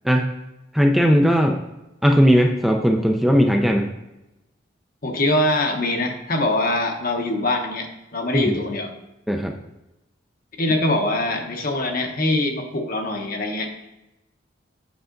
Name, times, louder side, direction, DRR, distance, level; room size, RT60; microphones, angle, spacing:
voice 1, 0.7-1.6 2.0-3.9 8.3-8.5 9.3-9.5, equal, ahead, 2 dB, 0.4 m, -17 dB
voice 2, 5.0-8.9 10.6-13.7, left 1 dB, 45° left, 4 dB, 1.0 m, -23 dB
8.1 x 5.5 x 3.8 m, 0.94 s
head